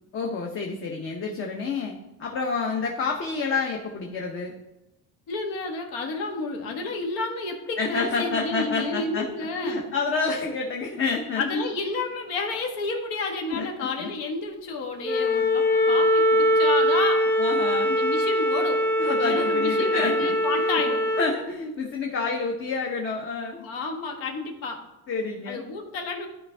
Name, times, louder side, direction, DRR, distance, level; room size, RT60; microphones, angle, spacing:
voice 1, 0.1-1.9 2.2-4.6 7.8-9.3 9.6-11.6 13.5-14.1 17.4-18.0 19.0-20.8 21.2-23.6 25.1-25.6, left 4 dB, 35° left, 1 dB, 0.8 m, -28 dB
voice 2, 5.3-9.8 11.3-17.2 17.9-18.8 19.2-21.0 23.6-24.8 25.5-26.3, left 3 dB, 80° left, 3 dB, 1.4 m, -31 dB
Wind instrument woodwind instrument, 15.0-21.3, equal, 5° left, 0.5 m, -22 dB
11.0 x 4.3 x 3.3 m, 0.95 s
cardioid pair, 145°, 35 cm